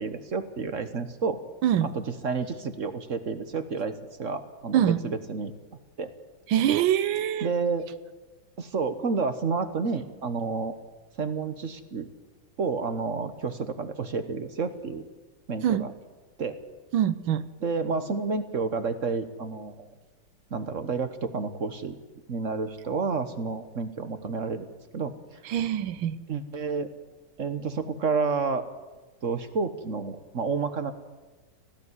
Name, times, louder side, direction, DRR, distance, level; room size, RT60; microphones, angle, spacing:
voice 1, 0.0-1.4 1.8-5.5 6.0-6.1 7.4-7.8 8.6-10.7 11.2-12.1 12.6-15.0 15.5-15.9 16.4-16.6 17.6-19.9 20.5-21.9 22.3-24.7 24.9-25.1 26.3-26.9 27.4-28.6 29.2-30.9, right 4 dB, 45° right, 10 dB, 1.4 m, -30 dB
voice 2, 6.5-7.5 15.6-15.9 16.9-17.4 25.5-26.2, right 10 dB, 85° right, 15 dB, 1.6 m, -24 dB
18.0 x 15.0 x 9.7 m, 1.2 s
omnidirectional pair, 2.1 m